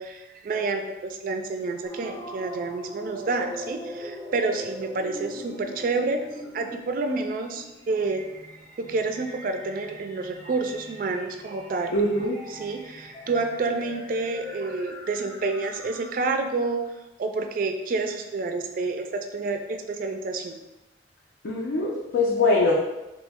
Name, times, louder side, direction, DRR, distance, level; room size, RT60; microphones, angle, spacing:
voice 1, 0.0-6.2 6.5-8.2 8.8-11.9 12.5-16.8 17.2-20.6, right 3 dB, 50° right, 6 dB, 0.3 m, -29 dB
sound 1, 1.8-16.4, equal, 10° left, 0.5 m, -41 dB
voice 2, 11.9-12.4 21.4-22.7, left 2 dB, 80° left, -4 dB, 0.5 m, -22 dB
3.1 x 2.1 x 3.5 m, 0.99 s
head